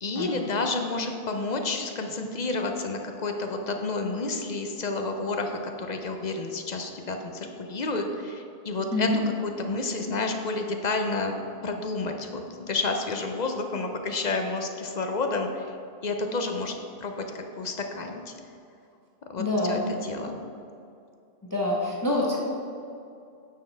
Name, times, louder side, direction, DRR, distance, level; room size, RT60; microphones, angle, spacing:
voice 1, 0.0-9.1 9.4-11.4 11.6-15.7 16.0-18.3 19.3-20.4, left 3 dB, 50° left, 4 dB, 0.7 m, -30 dB
voice 2, 19.4-19.8 21.4-22.4, left 2 dB, 20° left, -4 dB, 1.0 m, -26 dB
9.1 x 6.7 x 3.3 m, 2.5 s
omnidirectional pair, 1.1 m